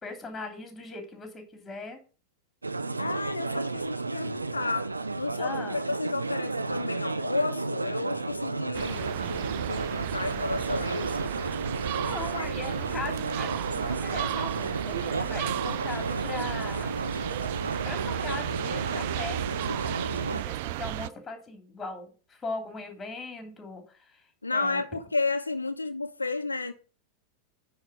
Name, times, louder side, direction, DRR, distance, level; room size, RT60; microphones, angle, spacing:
voice 1, 0.0-2.0 5.4-5.8 11.9-16.9 17.8-24.3 24.5-24.8, left 3 dB, 15° left, 3.0 m, -39 dB
sound 1, 2.6-20.4, right 3 dB, 80° right, 0.7 m, -33 dB
voice 2, 3.0-4.9 5.2-11.4 12.4-12.5 24.4-26.7, left 3 dB, 80° left, 0.8 m, -32 dB
sound 2, 8.7-21.1, right 15 dB, 50° right, 0.3 m, -34 dB
9.5 x 4.5 x 6.8 m
figure-of-eight pair, 90°, 0 cm